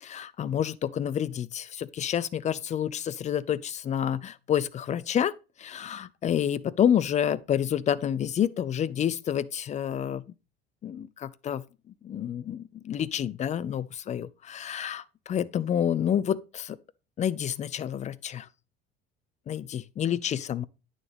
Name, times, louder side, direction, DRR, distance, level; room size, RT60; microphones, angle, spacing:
voice 1, 0.0-5.3 5.6-10.2 10.8-11.6 12.0-16.8 17.2-18.5 19.5-20.7, left 9 dB, 25° left, 0.4 m, -29 dB
9.1 x 6.2 x 3.4 m
figure-of-eight pair, 60°, 32 cm